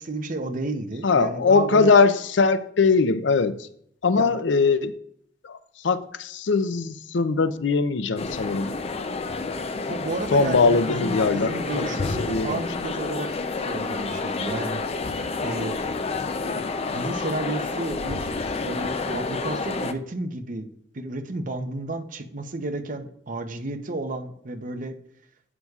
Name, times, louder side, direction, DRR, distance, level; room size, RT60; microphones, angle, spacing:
voice 1, 0.0-1.9 4.1-4.3 9.9-13.3 13.6-14.8 15.4-15.7 16.4-18.3 18.6-20.7 20.9-24.9, right 2 dB, 45° right, 0.8 m, -32 dB
voice 2, 1.0-3.7 4.0-4.9 5.4-5.6 5.8-8.7 10.3-11.9 12.2-12.6, left 4 dB, 90° left, 0.5 m, -21 dB
sound 1, 8.2-19.9, left 3 dB, 35° left, 0.5 m, -29 dB
11.0 x 8.0 x 2.4 m
head